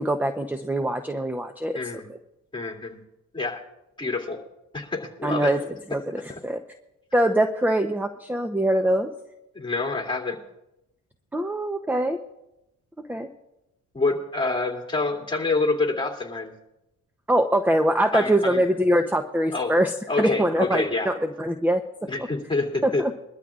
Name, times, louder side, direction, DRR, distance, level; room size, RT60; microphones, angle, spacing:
voice 1, 0.0-1.8 5.2-5.6 5.9-6.6 7.1-9.1 11.3-12.2 13.1-13.3 17.3-21.8 22.8-23.1, right 1 dB, 5° right, 7 dB, 0.8 m, -23 dB
voice 2, 1.7-2.1 2.5-3.0 3.3-3.6 4.0-4.4 4.7-5.5 9.5-10.4 13.9-16.5 18.1-18.6 19.5-19.7 20.1-21.1 22.0-23.2, left 3 dB, 15° left, 0 dB, 2.7 m, -27 dB
22.0 x 13.0 x 2.5 m, 0.89 s
cardioid pair, 90°, 30 cm